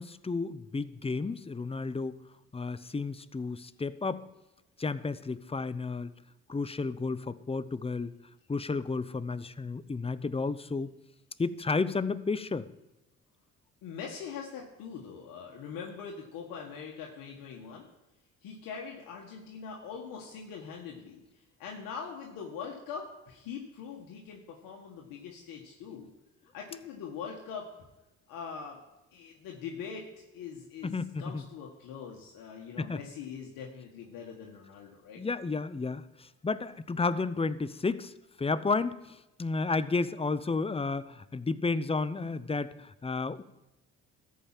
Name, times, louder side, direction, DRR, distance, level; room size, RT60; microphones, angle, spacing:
voice 1, 0.0-2.2 2.5-4.2 4.8-6.1 6.5-8.1 8.5-10.9 11.4-12.7 30.8-31.4 32.8-33.0 35.2-38.1 38.4-43.4, left 4 dB, 15° left, 15 dB, 0.7 m, -32 dB
voice 2, 13.8-17.9 18.4-26.1 26.5-27.9 28.3-28.8 29.1-35.2, left 6 dB, 75° left, -1 dB, 1.6 m, -42 dB
13.5 x 5.5 x 7.4 m, 0.97 s
supercardioid pair, 60°, 34 cm